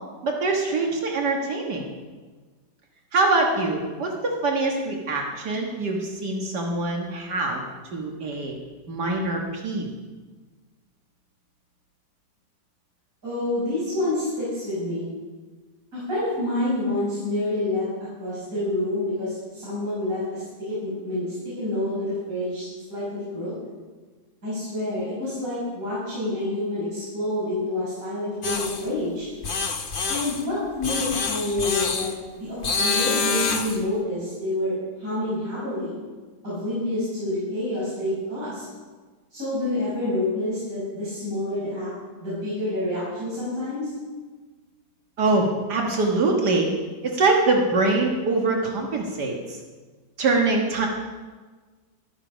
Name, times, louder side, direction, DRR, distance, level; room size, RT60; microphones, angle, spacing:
voice 1, 0.2-1.9 3.1-7.6 7.9-8.5 8.9-9.9 45.2-46.7 47.0-49.6 50.2-50.9, right 3 dB, 75° right, 0 dB, 2.1 m, -24 dB
voice 2, 13.2-15.1 15.9-23.5 24.4-29.3 30.1-32.1 32.4-36.0 36.4-38.6 39.3-41.9 42.2-43.9, left 1 dB, 55° right, -10 dB, 6.5 m, -28 dB
sound 1, 28.4-28.8 29.4-30.4 30.8-32.1 32.6-33.8, left 4 dB, 40° left, 0.9 m, -26 dB
14.0 x 13.0 x 5.1 m, 1.4 s
omnidirectional pair, 1.8 m